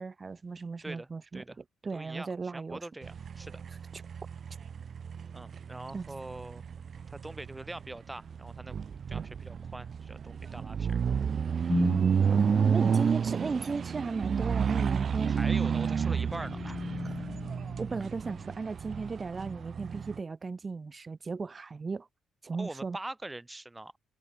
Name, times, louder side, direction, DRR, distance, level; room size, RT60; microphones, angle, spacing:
voice 1, 0.0-1.4 1.8-2.8 3.9-4.0 5.9-6.0 12.4-15.4 17.0-17.1 17.8-22.1 22.4-23.0, right 4 dB, 30° right, 2.8 m, -36 dB
voice 2, 0.8-1.6 1.9-3.6 5.3-6.6 7.1-11.0 15.3-16.8 22.5-23.9, right 2 dB, 15° right, 4.2 m, -43 dB
sound 1, 3.0-20.2, right 7 dB, 50° right, 0.5 m, -31 dB
sound 2, 11.7-12.3 15.1-18.6, left 4 dB, 35° left, 2.0 m, -38 dB
cardioid pair, 90°, 0 cm